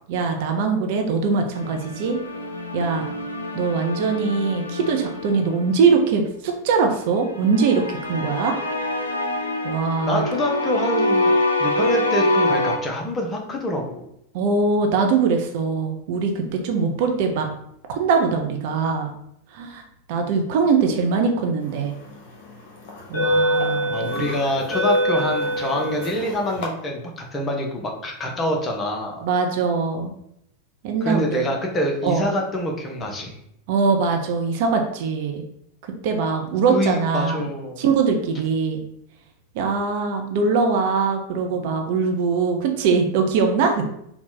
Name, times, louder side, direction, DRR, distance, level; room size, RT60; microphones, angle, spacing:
voice 1, 0.1-2.2 2.7-3.1 3.5-8.6 9.6-10.2 14.3-17.5 17.9-19.1 19.5-19.8 20.1-21.9 23.1-24.2 29.2-30.1 30.8-31.5 32.0-32.3 33.7-35.4 36.0-37.5 37.8-38.8 39.5-43.9, right 5 dB, 50° right, 4 dB, 0.6 m, -22 dB
sound 1, 1.5-5.9 7.3-12.8, left 1 dB, 75° left, 0.5 m, -25 dB
voice 2, 10.0-11.3 11.6-14.1 23.9-29.2 31.0-33.4 36.7-37.8, left 1 dB, 20° left, 1 dB, 0.8 m, -26 dB
sound 2, 21.9-22.1 22.9-26.7, equal, 50° left, 1.1 m, -24 dB
4.0 x 2.3 x 3.9 m, 0.74 s
figure-of-eight pair, 90°, 0 cm